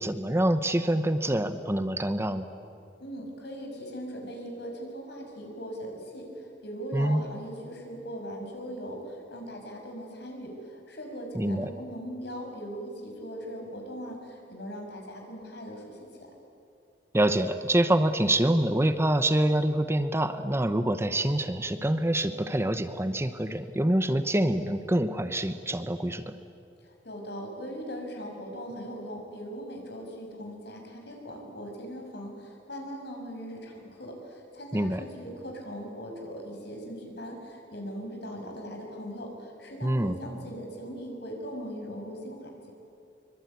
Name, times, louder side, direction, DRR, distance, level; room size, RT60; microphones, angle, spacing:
voice 1, 0.0-2.5 6.9-7.2 11.3-11.7 17.1-26.3 34.7-35.0 39.8-40.2, right 1 dB, 15° right, 10 dB, 0.9 m, -26 dB
voice 2, 3.0-16.3 26.8-42.7, equal, 65° left, 2 dB, 6.2 m, -40 dB
24.0 x 23.5 x 9.6 m, 2.5 s
head